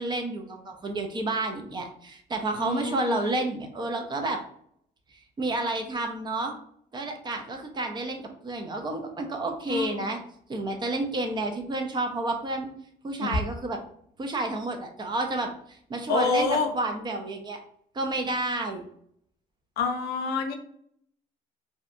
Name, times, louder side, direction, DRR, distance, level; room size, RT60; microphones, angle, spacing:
voice 1, 0.0-4.4 5.4-6.5 6.9-10.2 10.5-12.7 13.0-13.8 14.2-17.6 17.9-18.8, right 2 dB, 25° right, 4 dB, 0.4 m, -30 dB
voice 2, 2.6-3.5 9.7-10.1 13.2-13.3 16.1-16.7 19.8-20.5, left 4 dB, 70° left, 5 dB, 0.5 m, -28 dB
2.6 x 2.2 x 2.5 m, 0.67 s
cardioid pair, 110°, 17 cm